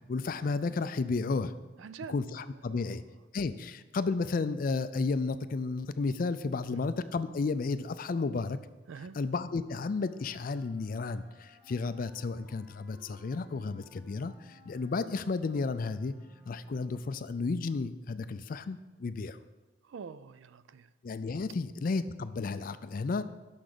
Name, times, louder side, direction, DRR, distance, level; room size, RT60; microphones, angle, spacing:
voice 1, 0.1-1.5 2.1-3.0 3.3-8.6 9.1-16.1 16.5-19.4 21.0-23.2, left 4 dB, 45° left, 0.3 m, -32 dB
voice 2, 1.8-2.2 2.7-3.0 6.7-6.8 8.9-9.2 19.9-20.9, right 6 dB, 70° right, 0.3 m, -45 dB
Wind instrument woodwind instrument, 9.7-17.1, left 2 dB, 5° right, 2.0 m, -61 dB
6.2 x 6.1 x 6.7 m
head